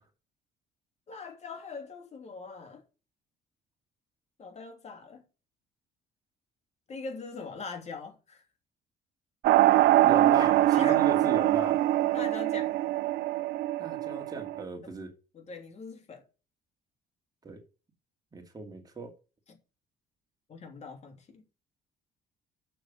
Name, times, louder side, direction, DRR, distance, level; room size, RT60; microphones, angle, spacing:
voice 1, 1.1-2.8 4.4-5.2 6.9-8.4 10.4-11.0 12.1-12.7 14.8-14.9 15.3-16.2 20.5-21.4, left 4 dB, 40° left, 2.9 m, -42 dB
sound 1, 9.4-14.6, right 15 dB, 75° right, 0.6 m, -23 dB
voice 2, 10.0-11.8 13.8-15.1 17.4-17.6 18.3-19.1, right 3 dB, 20° right, 2.5 m, -36 dB
7.1 x 6.2 x 7.4 m
cardioid pair, 110°, 17 cm